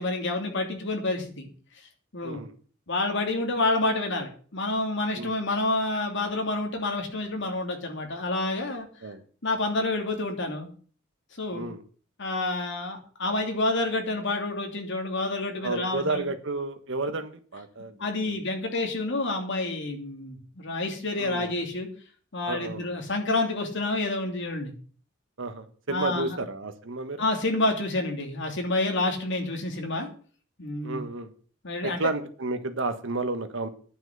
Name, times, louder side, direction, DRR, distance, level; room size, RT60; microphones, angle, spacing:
voice 1, 0.0-1.5 2.1-2.4 2.9-8.9 9.4-10.7 11.4-11.7 12.2-16.2 18.0-21.9 22.3-24.7 25.9-26.4 27.2-30.1 30.6-31.0 31.6-32.0, left 2 dB, 60° left, 3 dB, 2.9 m, -28 dB
voice 2, 2.2-2.5 5.1-5.3 9.0-9.2 11.5-11.8 15.6-18.0 18.2-18.4 21.2-21.5 22.5-22.9 25.4-27.2 30.8-31.3 31.8-33.7, right 3 dB, 65° right, 8 dB, 1.4 m, -31 dB
10.5 x 6.0 x 8.1 m, 0.43 s
head